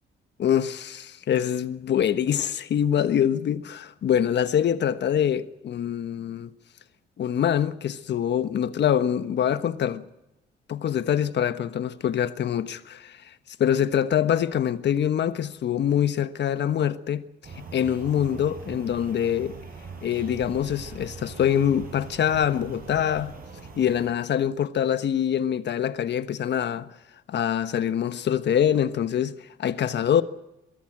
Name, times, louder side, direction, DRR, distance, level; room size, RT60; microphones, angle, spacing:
voice 1, 0.4-6.5 7.2-10.0 10.7-13.3 13.6-17.2 17.6-19.5 20.0-23.4 23.8-26.9 27.3-30.2, left 9 dB, 60° left, 1.3 m, -24 dB
sound 1, 17.4-24.1, right 5 dB, 45° right, 6.3 m, -41 dB
23.0 x 14.0 x 8.9 m
cardioid pair, 90°, 20 cm